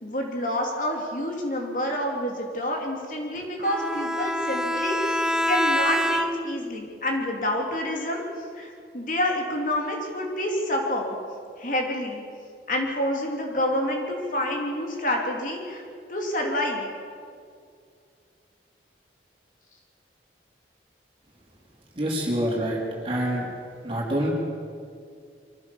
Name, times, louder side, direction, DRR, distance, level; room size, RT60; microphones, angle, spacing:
voice 1, 0.0-5.1 5.5-8.2 8.5-11.1 11.6-12.2 12.7-15.8 16.1-16.9, left 1 dB, 45° left, 1 dB, 3.0 m, -28 dB
Bowed string instrument, 3.6-6.6, equal, 5° right, 0.6 m, -26 dB
voice 2, 22.0-23.5 23.8-24.3, right 1 dB, 30° right, -3 dB, 4.2 m, -26 dB
24.0 x 15.5 x 7.2 m, 2.2 s
head